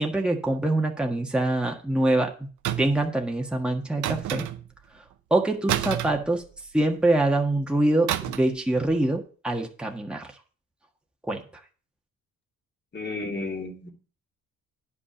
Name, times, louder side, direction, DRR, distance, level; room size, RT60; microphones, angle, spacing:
voice 1, 0.0-2.5 2.8-4.5 5.3-6.4 6.7-10.3 11.3-11.4, right 2 dB, 5° right, 1 dB, 1.5 m, -24 dB
sound 1, 2.6-3.1 4.0-4.8 5.7-6.9 8.1-8.6 8.8-9.1, right 11 dB, 75° right, 0.9 m, -29 dB
voice 2, 12.9-13.9, left 3 dB, 35° left, 4 dB, 2.8 m, -32 dB
9.7 x 5.4 x 7.1 m, 0.39 s
cardioid pair, 90°, 30 cm